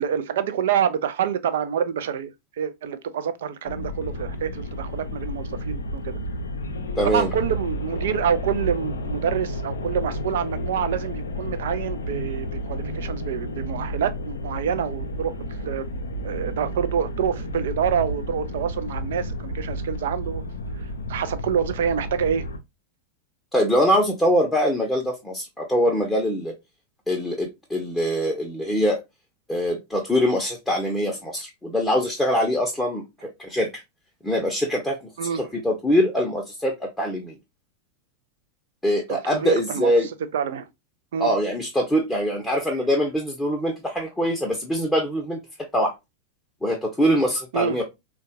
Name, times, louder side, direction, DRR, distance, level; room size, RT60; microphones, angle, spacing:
voice 1, 0.0-2.3 2.6-6.2 7.0-15.4 15.6-15.9 16.2-20.4 20.8-22.5 35.2-35.4 39.1-39.9 40.3-40.7 41.1-41.3 47.5-47.8, right 8 dB, 60° right, 0.4 m, -27 dB
sound 1, 3.6-22.6, equal, 70° left, 0.4 m, -31 dB
voice 2, 7.0-7.3 23.5-26.5 27.1-29.0 29.5-33.7 34.2-35.0 35.3-37.3 38.8-40.1 41.2-45.4 45.7-45.9 46.6-47.8, equal, 5° left, 0.7 m, -23 dB
3.5 x 2.2 x 2.5 m
figure-of-eight pair, 90°, 0 cm